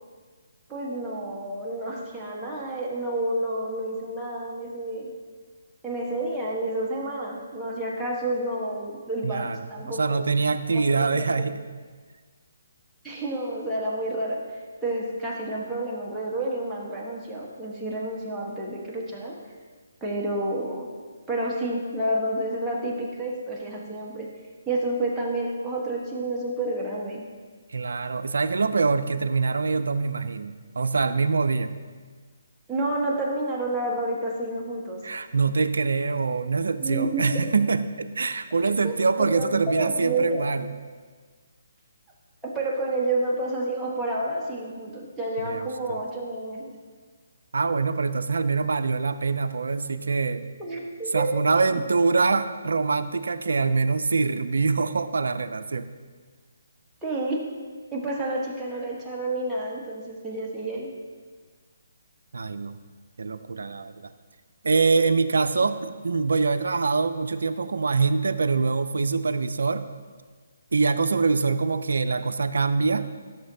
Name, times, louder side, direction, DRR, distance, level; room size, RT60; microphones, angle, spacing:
voice 1, 0.7-5.1 5.8-10.3 10.7-11.5 13.0-19.4 20.0-20.9 21.3-24.3 24.7-27.2 32.7-35.1 36.8-37.4 38.8-40.4 42.4-46.7 50.6-51.5 57.0-57.5 57.9-60.9, right 1 dB, 5° right, -6 dB, 1.3 m, -30 dB
voice 2, 9.2-11.5 27.7-31.7 35.0-40.7 45.4-46.0 47.5-50.4 51.1-55.9 62.3-62.8 63.2-64.1 64.6-69.8 70.7-73.0, right 4 dB, 75° right, 10 dB, 0.4 m, -24 dB
12.5 x 6.6 x 2.8 m, 1.5 s
figure-of-eight pair, 145°, 0 cm